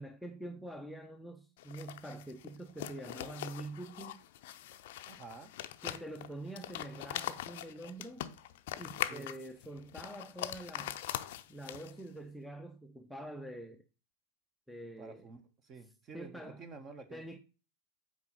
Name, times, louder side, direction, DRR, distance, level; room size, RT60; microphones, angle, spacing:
voice 1, 0.0-4.2 5.8-8.3 8.8-11.0 11.5-13.8 14.7-15.3 16.1-16.6 17.1-17.4, right 1 dB, ahead, 0.7 m, -45 dB
sound 1, 1.6-12.1, left 13 dB, 50° left, 0.6 m, -42 dB
voice 2, 5.1-5.5 9.1-9.3 15.0-17.4, right 4 dB, 25° right, 1.2 m, -50 dB
8.5 x 4.9 x 4.1 m
figure-of-eight pair, 90°, 0 cm